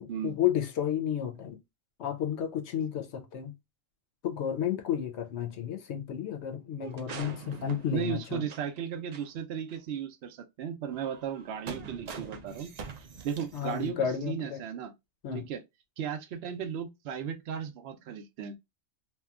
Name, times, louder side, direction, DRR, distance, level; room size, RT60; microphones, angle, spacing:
voice 1, 0.0-1.6 2.0-3.5 4.2-8.5 13.5-14.6 15.2-15.4, left 9 dB, 70° left, 0.8 m, -32 dB
sound 1, 6.8-8.8 9.1-9.2 9.7-9.8 10.9-13.9, right 5 dB, 85° right, 0.3 m, -44 dB
voice 2, 7.9-12.7 13.2-14.9 15.3-15.6 16.0-18.6, right 8 dB, 65° right, 0.7 m, -35 dB
2.7 x 2.2 x 2.3 m
omnidirectional pair, 1.3 m